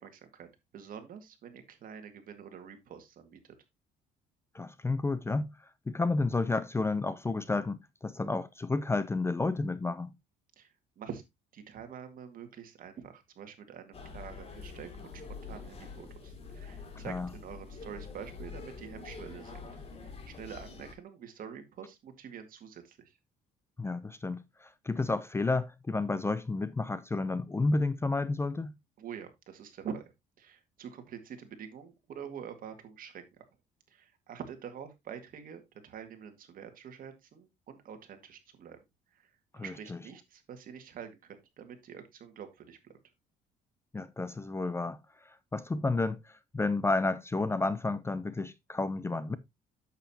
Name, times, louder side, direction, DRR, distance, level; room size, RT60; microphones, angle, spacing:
voice 1, 0.0-3.4 10.6-11.2 11.5-19.6 20.0-23.2 29.0-30.1 30.4-33.2 33.9-38.8 39.1-42.8, right 7 dB, 55° right, 2.0 m, -46 dB
voice 2, 4.5-10.1 17.0-17.3 23.8-28.7 39.5-40.0 43.9-45.0 45.3-49.4, left 3 dB, 15° left, 0.5 m, -31 dB
sound 1, 13.9-20.9, left 4 dB, 35° left, 2.6 m, -46 dB
8.8 x 7.5 x 2.8 m
cardioid pair, 110°, 17 cm